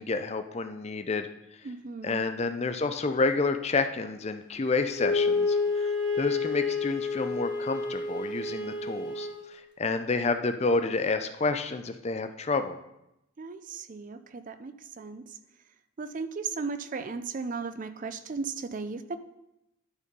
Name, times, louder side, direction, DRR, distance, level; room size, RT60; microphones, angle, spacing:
voice 1, 0.0-1.7 2.0-12.8, left 3 dB, 30° left, 9 dB, 0.4 m, -29 dB
voice 2, 1.6-2.3 13.4-15.4 16.0-19.2, right 4 dB, 35° right, 11 dB, 0.4 m, -36 dB
Wind instrument woodwind instrument, 4.9-9.4, left 4 dB, 50° left, 1.8 m, -29 dB
11.0 x 4.2 x 5.3 m, 0.87 s
head